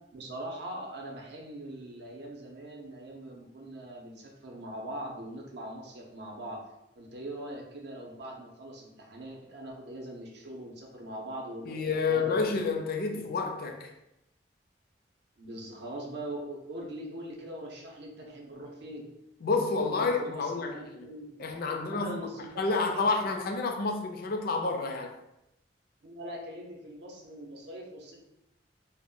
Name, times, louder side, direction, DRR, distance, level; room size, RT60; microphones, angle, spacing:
voice 1, 0.1-6.6 7.0-12.6 13.1-13.2 15.4-19.1 19.9-21.3 21.7-22.6 22.9-23.1 26.0-28.2, right 1 dB, 65° right, 0.6 m, -42 dB
voice 2, 11.7-13.9 19.4-21.1 21.4-22.2 22.6-25.1, left 4 dB, 55° left, 0.4 m, -29 dB
2.1 x 2.0 x 3.7 m
head